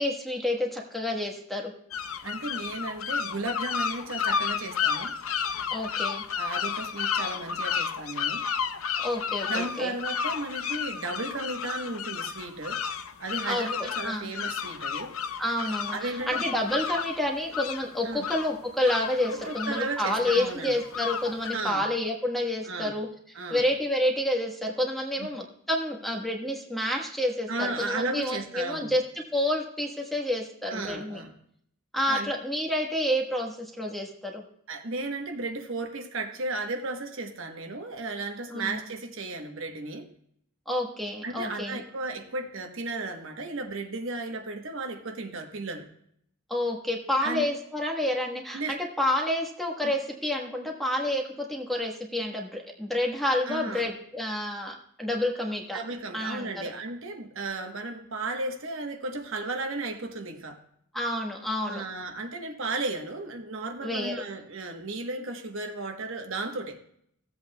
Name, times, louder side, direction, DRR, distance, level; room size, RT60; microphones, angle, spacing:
voice 1, 0.0-1.7 5.7-6.2 9.0-9.9 13.5-14.3 15.4-23.1 23.5-29.0 29.3-31.2 31.9-34.4 38.5-38.8 40.7-41.8 46.5-55.8 56.1-56.7 60.9-61.8 63.8-64.2, left 1 dB, ahead, 0 dB, 1.2 m, -29 dB
sound 1, 1.9-21.6, left 7 dB, 75° left, 0.6 m, -32 dB
voice 2, 2.2-5.2 6.4-8.5 9.5-12.8 13.2-15.1 15.9-16.5 18.0-18.3 19.3-20.8 21.5-21.8 22.6-23.0 23.3-23.6 25.2-25.3 27.5-28.9 30.7-31.3 32.1-32.3 34.7-40.1 41.2-45.9 47.2-47.5 48.5-48.8 49.8-49.9 53.4-53.9 55.7-60.6 61.7-66.8, right 2 dB, 65° right, 4 dB, 1.1 m, -34 dB
16.5 x 8.0 x 2.2 m, 0.70 s
head